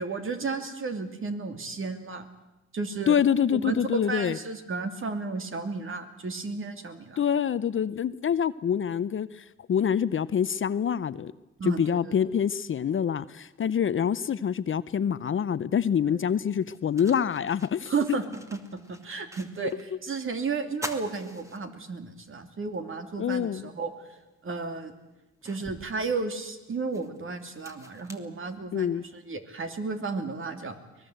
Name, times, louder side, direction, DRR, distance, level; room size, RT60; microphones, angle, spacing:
voice 1, 0.0-2.3 2.7-3.2 3.5-3.7 4.1-7.2 11.6-12.1 16.0-16.2 17.9-19.7 20.0-23.9 24.4-24.9 25.4-30.8, right 4 dB, 45° right, 7 dB, 2.9 m, -33 dB
voice 2, 3.1-4.4 7.2-11.3 11.6-18.2 23.2-23.7 28.7-29.0, left 8 dB, 40° left, 15 dB, 0.7 m, -26 dB
sound 1, 16.5-19.9 20.2-20.3 20.7-22.2 22.7-22.8 24.2-24.3 24.8-29.0, equal, 10° right, 2.3 m, -45 dB
23.5 x 20.0 x 8.0 m, 1.0 s
cardioid pair, 90°, 30 cm